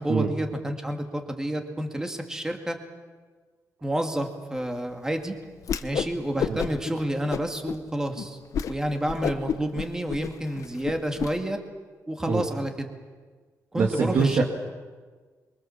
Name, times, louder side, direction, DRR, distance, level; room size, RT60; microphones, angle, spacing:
voice 1, 0.0-2.8 3.8-5.4 5.8-8.4 8.7-11.6 12.1-12.9 13.7-14.4, right 1 dB, 10° right, 4 dB, 2.3 m, -29 dB
Whoosh swoosh swish, 5.6-6.1 6.4-6.9 7.3-7.8 8.2-8.3 8.5-8.7 9.1-11.3, left 7 dB, 60° left, 1.1 m, -30 dB
voice 2, 13.7-14.4, right 5 dB, 50° right, 0 dB, 2.5 m, -24 dB
28.0 x 23.5 x 7.3 m, 1.5 s
wide cardioid pair, 175°, 6 cm